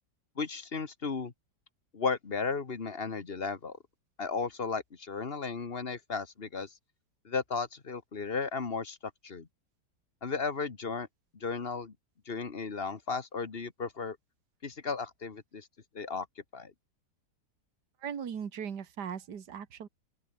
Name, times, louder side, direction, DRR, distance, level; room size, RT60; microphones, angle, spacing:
voice 1, 0.4-1.3 1.9-3.8 4.2-6.7 7.3-9.0 9.2-9.5 10.2-11.1 11.4-11.9 12.3-14.2 14.6-15.7 15.9-16.3 16.5-16.7, left 4 dB, 35° left, 1.6 m, -34 dB
voice 2, 18.0-19.9, right 7 dB, 70° right, 2.2 m, -38 dB
open air
omnidirectional pair, 1.9 m